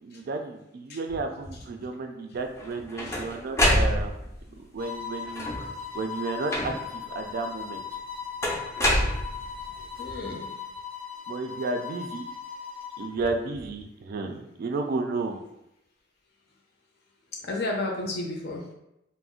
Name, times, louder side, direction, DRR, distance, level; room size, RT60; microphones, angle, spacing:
voice 1, 0.0-4.2 4.7-7.8 11.3-12.3 13.0-15.4, right 3 dB, 50° right, 5 dB, 0.3 m, -32 dB
sound 1, 2.6-4.4 5.3-5.8 6.5-7.0 8.4-9.7, equal, 15° left, 0.5 m, -26 dB
voice 2, 3.0-3.8 4.5-4.6 10.0-10.6 17.4-18.7, left 2 dB, 55° left, 0 dB, 0.6 m, -34 dB
sound 2, 4.8-13.2, left 6 dB, 85° left, 1.0 m, -38 dB
2.4 x 2.1 x 3.6 m, 0.85 s
head